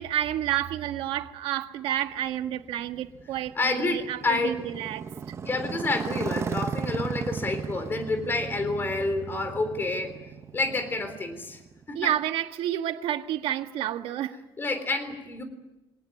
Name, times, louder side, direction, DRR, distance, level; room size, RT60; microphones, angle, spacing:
voice 1, 0.0-5.0 11.9-14.4, right 12 dB, 80° right, 1.5 m, -30 dB
Motorcycle, 2.1-12.1, right 6 dB, 30° right, 0.8 m, -36 dB
voice 2, 3.6-4.6 5.4-10.1 10.5-11.6 11.9-12.1 14.6-15.4, left 3 dB, 25° left, 3.6 m, -29 dB
25.0 x 19.0 x 9.6 m
cardioid pair, 165°, 9 cm